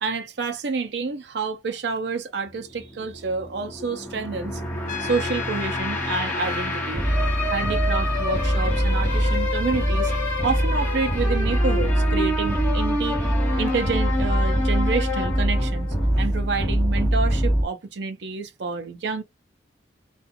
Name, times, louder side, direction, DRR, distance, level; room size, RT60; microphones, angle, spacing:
voice 1, 0.0-4.6 5.0-7.1 7.5-10.1 10.4-13.2 13.6-19.2, right 4 dB, 65° right, 0.5 m, -28 dB
sound 1, 2.5-17.6, equal, 15° left, 1.1 m, -23 dB
Trumpet, 4.9-6.9, left 10 dB, 45° left, 0.3 m, -34 dB
2.3 x 2.3 x 2.6 m
head